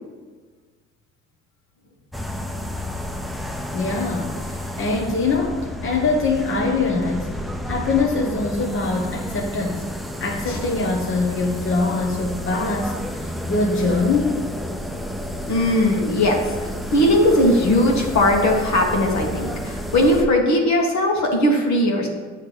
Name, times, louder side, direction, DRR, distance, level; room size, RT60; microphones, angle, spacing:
sound 1, 2.1-20.2, equal, ahead, 0.5 m, -31 dB
voice 1, 3.7-7.3 7.7-9.8 10.2-14.5, left 3 dB, 40° left, 0 dB, 1.0 m, -23 dB
voice 2, 15.5-16.4 16.9-22.1, left 1 dB, 65° left, 0 dB, 1.5 m, -18 dB
8.4 x 3.3 x 6.1 m, 1.5 s
cardioid pair, 90°, 30 cm